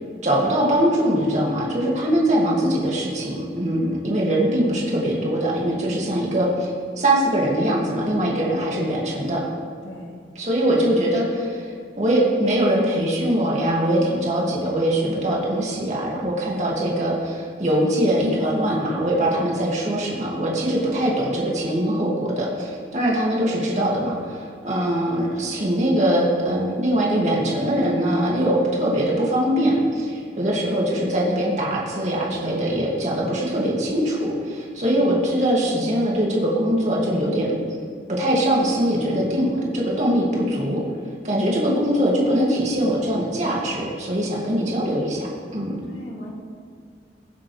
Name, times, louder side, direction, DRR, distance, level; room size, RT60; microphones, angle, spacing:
voice 1, 0.2-9.4 10.4-11.7 12.0-37.6 38.1-40.8 41.2-45.8, right 1 dB, 40° right, -4 dB, 2.2 m, -22 dB
voice 2, 9.8-10.2 34.9-35.3 45.9-46.3, left 1 dB, 75° left, -2 dB, 2.4 m, -38 dB
22.0 x 7.6 x 3.3 m, 2.2 s
head